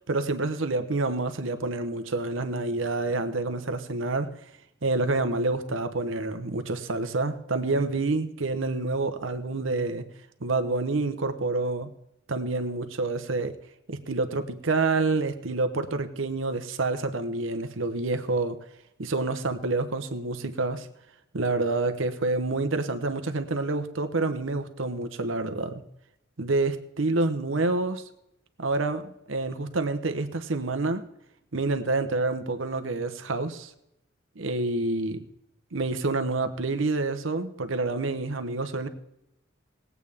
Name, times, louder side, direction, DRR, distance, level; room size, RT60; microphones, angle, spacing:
voice 1, 0.1-4.3 4.8-10.0 10.4-11.9 12.3-13.6 13.9-18.6 19.0-20.9 21.3-25.8 26.4-28.0 28.6-31.0 31.5-33.7 34.4-35.2 35.7-38.9, right 3 dB, 80° right, 9 dB, 1.0 m, -28 dB
20.0 x 8.2 x 3.6 m, 0.82 s
head